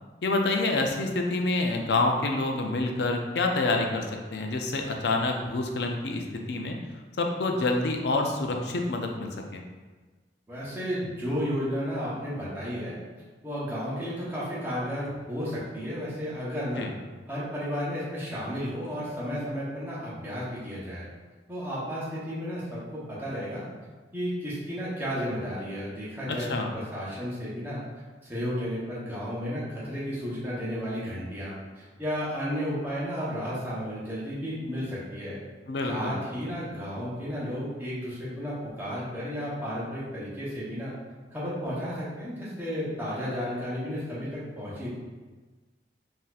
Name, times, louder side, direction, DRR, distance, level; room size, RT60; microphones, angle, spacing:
voice 1, 0.2-4.1 4.3-6.8 7.2-9.6 16.8-16.9 26.3-26.7 35.7-36.2, left 2 dB, 70° left, 2 dB, 0.4 m, -27 dB
voice 2, 10.5-12.9 13.4-16.9 17.3-21.1 21.5-23.6 24.1-27.8 28.2-35.4 35.9-40.9 41.3-44.9, equal, 10° right, -8 dB, 0.8 m, -33 dB
4.0 x 2.6 x 2.4 m, 1.3 s
head